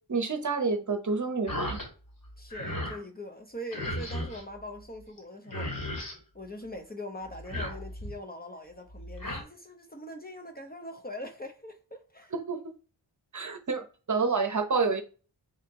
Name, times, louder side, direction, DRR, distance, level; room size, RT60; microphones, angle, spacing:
voice 1, 0.1-1.8 12.3-12.6 13.3-15.0, right 4 dB, 40° right, 0.8 m, -28 dB
sound 1, 1.5-1.9 2.2-3.0 3.7-4.4 5.2-5.3 5.5-6.2 7.3-8.2 8.9-9.4, left 1 dB, 45° left, 2.1 m, -35 dB
voice 2, 2.4-6.0 6.3-12.3, left 1 dB, 20° left, 0.7 m, -42 dB
4.3 x 2.8 x 3.6 m
wide cardioid pair, 65°, 45 cm